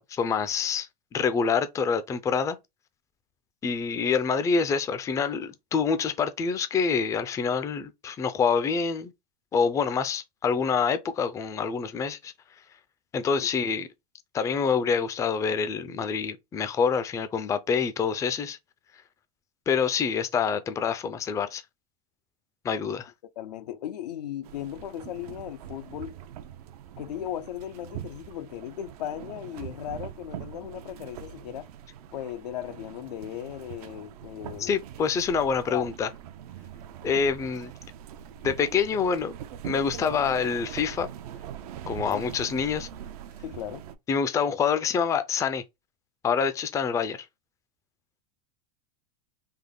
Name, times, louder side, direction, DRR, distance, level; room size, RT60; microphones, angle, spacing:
voice 1, 0.0-2.6 3.6-9.1 9.5-12.3 13.1-13.9 14.3-18.6 19.7-21.6 22.6-23.1 34.6-36.1 37.0-37.7 38.4-39.3 39.6-41.1 41.9-42.9 44.1-45.6 46.2-47.2, left 6 dB, 15° left, 0.4 m, -26 dB
voice 2, 23.4-26.1 27.0-31.7 32.1-34.8 35.7-35.9 42.1-42.2 43.4-43.9, left 11 dB, 85° left, 0.5 m, -37 dB
Inside boat, 24.4-43.9, right 10 dB, 70° right, 0.5 m, -42 dB
3.5 x 2.1 x 3.6 m
supercardioid pair, 120°, 20 cm